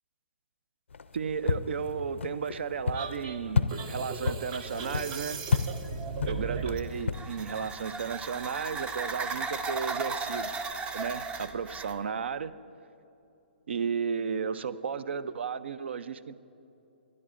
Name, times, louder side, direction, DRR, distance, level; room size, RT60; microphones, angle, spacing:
sound 1, 0.9-7.7, left 5 dB, 80° left, 0.4 m, -33 dB
voice 1, 1.1-5.4 6.2-10.5 10.9-12.5 13.7-16.3, right 6 dB, 70° right, 16 dB, 0.4 m, -34 dB
sound 2, 2.9-6.9, right 5 dB, 45° right, 0.8 m, -37 dB
sound 3, 6.7-12.0, right 4 dB, 15° right, 0.5 m, -36 dB
22.5 x 11.0 x 2.5 m, 2.8 s
hypercardioid pair, 130°, 6 cm